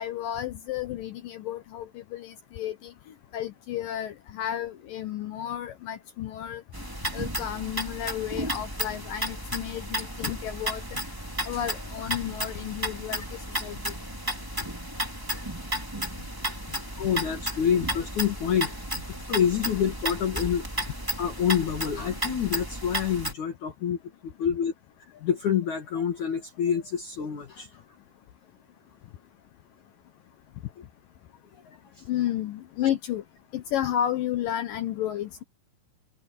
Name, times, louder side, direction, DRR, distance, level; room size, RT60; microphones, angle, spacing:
voice 1, 0.0-2.9 3.3-6.6 7.1-11.0 11.4-13.9 32.1-33.2 33.5-35.4, left 11 dB, 70° left, 2.2 m, -32 dB
sound 1, 6.7-23.3, right 1 dB, 5° right, 2.6 m, -33 dB
voice 2, 17.0-18.7 19.3-20.7 21.2-24.7 25.1-27.8 31.7-32.0 32.8-32.9, left 8 dB, 50° left, 3.1 m, -27 dB
omnidirectional pair, 4.8 m